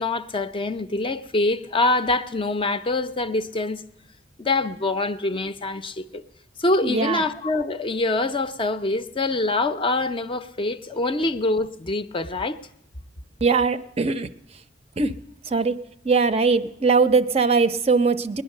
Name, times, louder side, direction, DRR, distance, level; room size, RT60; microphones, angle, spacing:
voice 1, 0.0-3.8 4.4-6.2 6.6-12.6, left 2 dB, 30° left, 0.5 m, -25 dB
voice 2, 6.8-7.2 13.4-14.3 15.0-15.1 15.5-15.8 16.0-18.4, right 4 dB, 35° right, 0.5 m, -21 dB
19.5 x 10.5 x 6.5 m
head